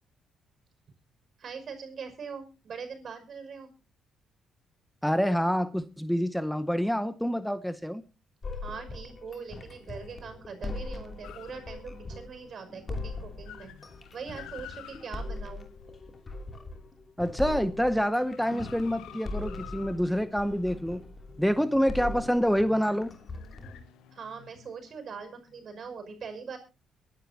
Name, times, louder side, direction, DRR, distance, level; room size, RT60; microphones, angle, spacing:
voice 1, 1.4-3.7 8.5-13.7 14.1-15.7 24.1-26.6, right 5 dB, 55° right, 5.8 m, -42 dB
voice 2, 5.0-8.0 17.2-21.0 21.4-23.1, equal, ahead, 0.7 m, -27 dB
sound 1, 8.4-23.8, left 2 dB, 35° left, 2.8 m, -40 dB
sound 2, 11.2-12.2 12.6-12.7 13.0-16.6 17.1-25.6, left 10 dB, 90° left, 1.3 m, -51 dB
23.0 x 11.5 x 2.8 m
cardioid pair, 90°, 0 cm